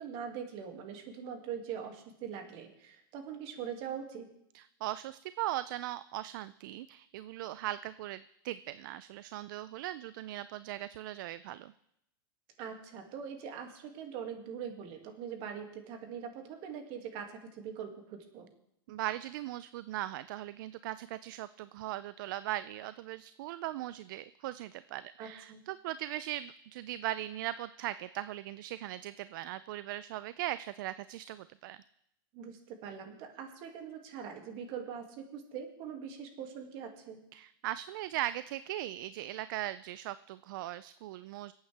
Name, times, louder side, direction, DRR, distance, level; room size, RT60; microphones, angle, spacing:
voice 1, 0.0-4.3 12.6-18.5 25.2-25.6 32.3-37.2, right 7 dB, 50° right, 4 dB, 2.2 m, -42 dB
voice 2, 4.5-11.7 18.9-31.8 37.3-41.5, right 14 dB, 65° right, 15 dB, 0.4 m, -39 dB
26.0 x 8.8 x 3.4 m, 0.77 s
hypercardioid pair, 130°, 12 cm